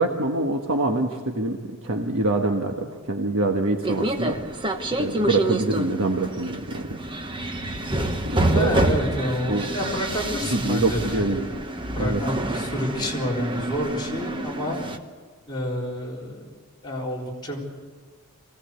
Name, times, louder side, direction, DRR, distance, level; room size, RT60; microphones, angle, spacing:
voice 1, 0.0-1.6 1.8-4.4 5.0-7.0 8.3-8.7 9.5-9.7 10.5-11.5 12.0-12.2, right 2 dB, 60° right, 2 dB, 1.5 m, -25 dB
sound 1, 3.8-15.0, right 1 dB, 20° right, 1.1 m, -27 dB
voice 2, 8.5-11.4 12.0-14.8 15.5-16.5 16.8-17.6, left 1 dB, 20° left, -4 dB, 4.1 m, -29 dB
24.0 x 17.5 x 8.2 m, 1.5 s
head